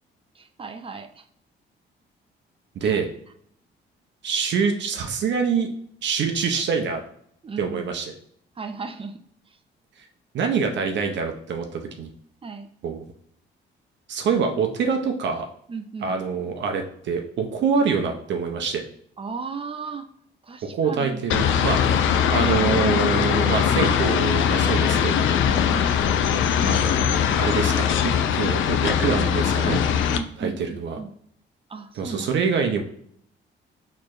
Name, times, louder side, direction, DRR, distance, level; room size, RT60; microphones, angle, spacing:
voice 1, 0.3-1.3 2.8-3.0 7.4-7.8 8.6-9.2 12.4-12.7 15.7-16.2 19.2-20.1 20.4-21.3 22.0-22.3 25.5-25.9 30.1-31.1 31.7-32.3, right 4 dB, 30° right, 8 dB, 0.4 m, -36 dB
voice 2, 2.8-3.1 4.2-5.7 6.0-7.0 7.6-8.1 10.3-12.1 12.8-13.1 14.1-15.5 16.0-18.8 20.7-22.0 22.3-25.5 26.6-29.8 30.4-31.0 32.0-32.8, right 5 dB, 65° right, 3 dB, 0.6 m, -25 dB
sound 1, 21.3-30.2, left 8 dB, 75° left, 0.4 m, -21 dB
4.4 x 3.1 x 2.5 m, 0.67 s
cardioid pair, 90°, 20 cm